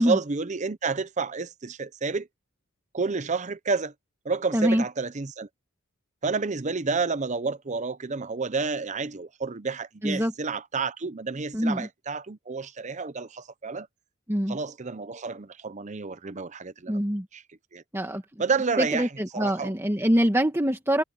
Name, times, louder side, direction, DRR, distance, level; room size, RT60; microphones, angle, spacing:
voice 1, 0.0-2.3 2.9-3.9 4.2-5.5 6.2-13.9 14.5-17.0 17.3-17.4 17.7-17.8 18.4-19.1 19.3-19.7, right 4 dB, 35° right, 0.7 m, -30 dB
voice 2, 4.5-4.8 10.0-10.3 11.5-11.9 14.3-14.6 16.9-17.3 17.9-18.2 18.8-21.0, equal, 10° right, 1.6 m, -24 dB
head